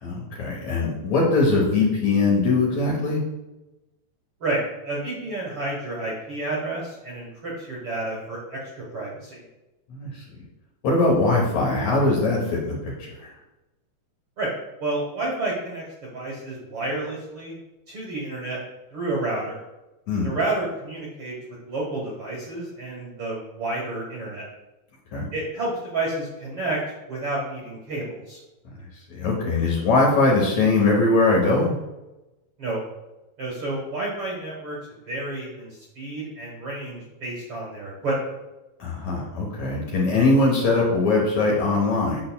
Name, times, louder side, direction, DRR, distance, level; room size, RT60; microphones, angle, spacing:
voice 1, 0.0-3.2 9.9-10.5 10.8-13.3 20.1-20.3 25.1-25.3 28.8-31.8 38.8-42.2, left 3 dB, 65° left, -2 dB, 1.9 m, -21 dB
voice 2, 4.4-9.4 14.4-14.5 14.8-17.6 17.9-18.6 18.9-19.6 20.2-21.3 21.6-24.5 25.3-26.8 27.1-28.4 32.6-32.8 33.4-34.8 35.0-38.3, right 2 dB, 55° right, -4 dB, 1.6 m, -30 dB
8.8 x 6.4 x 2.3 m, 1.0 s
omnidirectional pair, 4.2 m